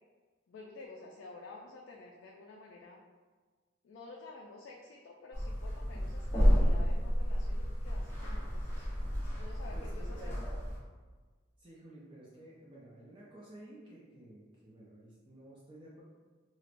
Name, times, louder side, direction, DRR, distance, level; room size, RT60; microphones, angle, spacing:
voice 1, 0.5-3.0 3.8-8.9 9.4-10.6, left 3 dB, 70° left, -1 dB, 0.3 m, -51 dB
sound 1, 5.3-10.8, equal, 10° left, 0.7 m, -31 dB
voice 2, 9.7-10.6 11.6-16.0, right 1 dB, 25° right, -7 dB, 0.5 m, -53 dB
4.4 x 2.1 x 2.5 m, 1.4 s
head